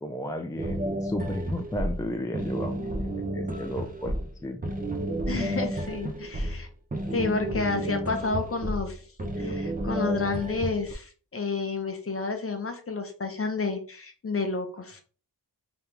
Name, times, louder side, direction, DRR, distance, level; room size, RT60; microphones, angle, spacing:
voice 1, 0.0-4.2 4.4-4.7, left 1 dB, 10° left, 4 dB, 0.3 m, -34 dB
sound 1, 0.6-10.9, right 1 dB, 20° right, 0.7 m, -31 dB
voice 2, 5.3-6.7 7.1-9.0 9.4-15.0, left 4 dB, 35° left, 5 dB, 0.8 m, -30 dB
3.5 x 2.9 x 3.3 m, 0.40 s
wide cardioid pair, 100°, 40 cm